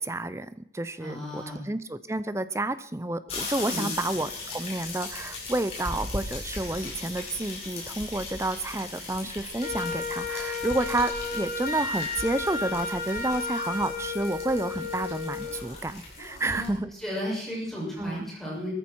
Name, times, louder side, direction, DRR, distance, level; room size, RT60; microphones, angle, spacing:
voice 1, 0.0-16.9 18.0-18.3, right 2 dB, 15° right, 14 dB, 0.6 m, -30 dB
voice 2, 1.0-1.6 3.6-4.0 16.4-18.7, equal, ahead, -7 dB, 6.8 m, -34 dB
sound 1, 3.3-16.7, left 2 dB, 35° left, 5.9 m, -38 dB
Wind instrument woodwind instrument, 9.6-15.7, left 4 dB, 50° left, 2.4 m, -33 dB
19.0 x 14.0 x 4.6 m, 0.65 s
head